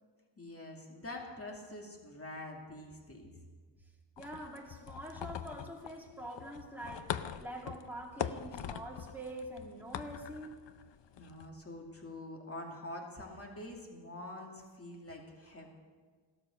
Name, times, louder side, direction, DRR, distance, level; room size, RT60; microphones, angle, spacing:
voice 1, 0.4-3.3 11.2-15.7, left 1 dB, 30° left, 1 dB, 2.4 m, -46 dB
sound 1, 4.2-11.5, left 9 dB, 70° left, 0.7 m, -43 dB
voice 2, 4.2-10.6, right 1 dB, 5° right, -2 dB, 2.6 m, -45 dB
16.5 x 13.0 x 6.4 m, 1.5 s
wide cardioid pair, 110°, 46 cm